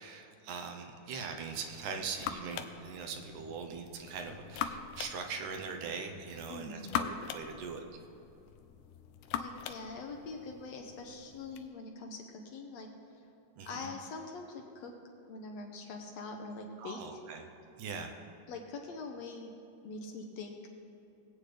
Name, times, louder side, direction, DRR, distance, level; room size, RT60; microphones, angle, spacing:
voice 1, 0.0-7.8 13.6-13.9 16.8-17.5 17.8-18.1, right 5 dB, 80° right, 4 dB, 2.3 m, -41 dB
sound 1, 1.5-11.7, left 9 dB, 85° left, 2.1 m, -42 dB
voice 2, 6.5-7.1 9.4-12.9 13.7-14.9 15.3-17.2 18.5-19.5 19.8-20.6, left 3 dB, 70° left, 2 dB, 1.8 m, -43 dB
21.0 x 8.2 x 3.3 m, 2.8 s
omnidirectional pair, 3.6 m